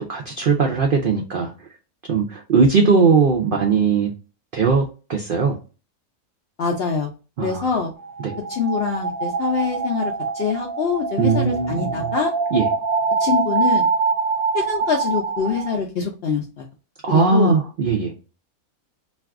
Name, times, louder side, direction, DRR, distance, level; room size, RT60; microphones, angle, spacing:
voice 1, 0.1-1.5 2.1-4.1 4.5-4.8 5.1-5.6 7.4-7.7 8.2-8.4 11.2-12.1 12.5-12.7 17.0-18.1, right 5 dB, 85° right, 1 dB, 0.4 m, -19 dB
voice 2, 6.6-7.1 7.4-7.9 8.5-12.3 13.2-13.9 14.5-16.7 17.1-17.6, left 5 dB, 70° left, 1 dB, 0.5 m, -24 dB
sound 1, 8.0-15.8, right 4 dB, 65° right, 1.0 m, -24 dB
2.5 x 2.3 x 3.4 m, 0.33 s
omnidirectional pair, 1.6 m